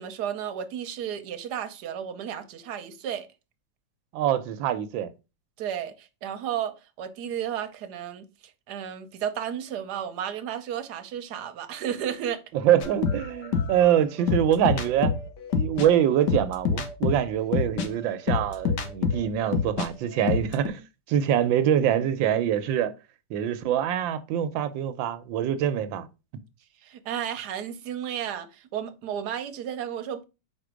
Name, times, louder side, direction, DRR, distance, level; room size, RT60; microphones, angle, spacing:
voice 1, 0.0-3.3 5.6-8.3 8.7-12.4 26.8-30.2, right 9 dB, 65° right, 1.2 m, -33 dB
voice 2, 4.1-5.1 12.6-15.1 15.5-20.8 21.1-22.9 23.3-26.1, right 10 dB, 90° right, 1.4 m, -24 dB
sound 1, 12.8-19.9 20.2-20.7, left 5 dB, 65° left, 1.4 m, -27 dB
4.7 x 4.4 x 4.9 m
omnidirectional pair, 2.0 m